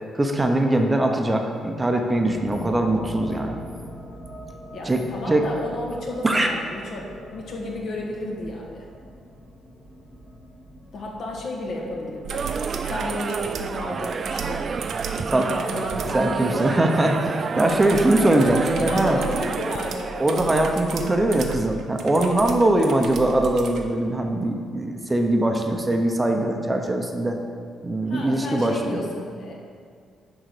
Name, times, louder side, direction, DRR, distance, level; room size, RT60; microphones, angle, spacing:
voice 1, 0.1-3.6 4.8-5.4 6.2-6.5 15.3-15.5 16.1-19.2 20.2-27.4 27.8-29.0, right 1 dB, 15° right, 3 dB, 0.8 m, -21 dB
sound 1, 2.1-13.5, equal, 45° left, 2.1 m, -42 dB
voice 2, 4.7-8.9 10.9-12.5 12.9-14.8 15.2-17.3 18.3-20.2 28.1-29.5, left 1 dB, 65° left, -1 dB, 1.8 m, -33 dB
sound 2, 12.2-16.2 17.6-23.8 25.5-25.6, right 7 dB, 65° right, 0.9 m, -35 dB
sound 3, 12.3-20.7, right 5 dB, 40° right, 0.3 m, -30 dB
10.0 x 3.9 x 6.7 m, 2.2 s
cardioid pair, 105°, 0 cm